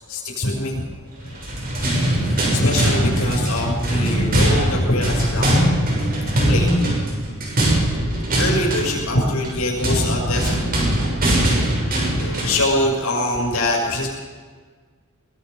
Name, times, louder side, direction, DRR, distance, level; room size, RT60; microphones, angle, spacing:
voice 1, 0.1-0.9 1.2-1.4 1.9-5.9 6.5-6.7 8.4-10.7 12.2-14.1, left 1 dB, 80° left, -2 dB, 6.1 m, -23 dB
sound 1, 1.3-12.7, right 1 dB, 45° right, 6.8 m, -21 dB
23.0 x 22.0 x 5.4 m, 1.5 s
head